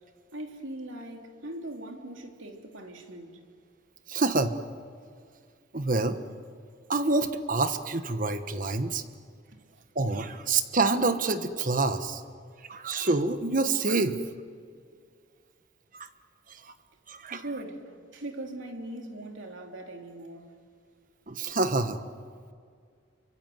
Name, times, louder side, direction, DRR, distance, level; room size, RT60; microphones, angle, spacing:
voice 1, 0.3-3.4 9.5-9.6 17.3-20.5, right 1 dB, 85° right, 3.1 m, -40 dB
voice 2, 4.1-4.5 5.7-6.2 6.9-9.0 9.9-12.2 12.7-14.2 15.9-16.1 17.1-17.4 21.3-22.0, right 3 dB, 45° right, 1.3 m, -27 dB
28.5 x 24.5 x 7.9 m
head